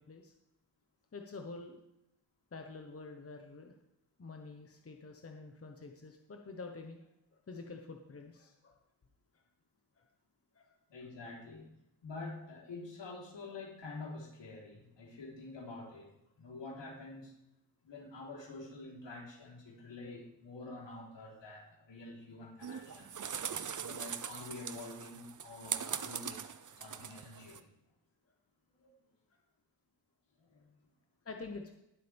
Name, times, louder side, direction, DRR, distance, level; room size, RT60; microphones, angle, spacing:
voice 1, 1.1-1.8 2.5-3.7 4.2-7.0 7.5-8.8 10.0-10.1 10.5-10.8 31.2-31.8, left 3 dB, 30° left, 3 dB, 1.2 m, -47 dB
voice 2, 10.9-11.6 12.0-16.1 16.4-17.3 17.8-23.1 23.8-26.5 26.8-27.7 28.8-28.9 30.4-30.8, left 3 dB, 70° left, -3 dB, 4.0 m, -47 dB
sound 1, 22.6-27.6, right 7 dB, 45° right, 0.8 m, -41 dB
18.5 x 7.7 x 3.6 m, 0.86 s
cardioid pair, 75°, 44 cm